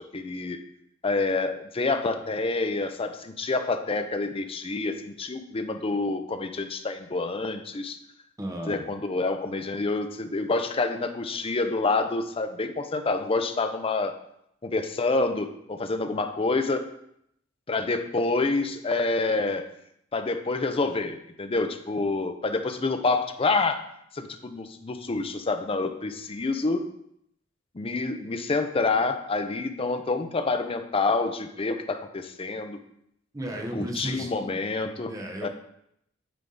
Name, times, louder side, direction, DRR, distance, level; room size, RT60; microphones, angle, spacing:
voice 1, 0.1-0.6 1.0-8.0 8.7-14.1 14.6-16.8 17.7-19.7 20.1-23.8 24.1-26.8 27.7-32.8 33.7-35.1 35.4-35.5, left 3 dB, 30° left, 7 dB, 0.5 m, -27 dB
voice 2, 8.4-8.8 33.3-34.6 35.1-35.5, right 1 dB, 20° right, 2 dB, 0.9 m, -34 dB
9.0 x 3.6 x 3.9 m, 0.74 s
head